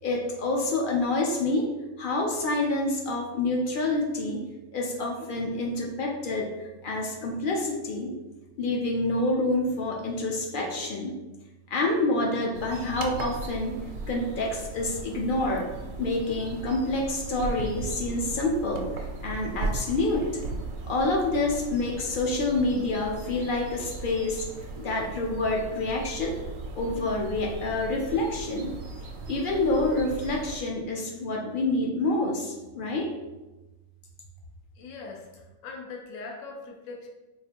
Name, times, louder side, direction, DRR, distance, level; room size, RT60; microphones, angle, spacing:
voice 1, 0.0-1.7 2.0-4.5 4.7-6.5 6.8-8.2 8.6-11.2 11.7-15.7 16.0-20.3 20.8-24.5 24.8-26.4 26.7-28.7 29.3-33.1, left 2 dB, 60° left, 0 dB, 0.6 m, -27 dB
sound 1, 12.5-30.6, right 3 dB, 85° right, 1.0 m, -37 dB
voice 2, 34.8-37.1, left 4 dB, 85° left, 1 dB, 1.0 m, -41 dB
4.2 x 2.5 x 2.8 m, 1.1 s
omnidirectional pair, 1.3 m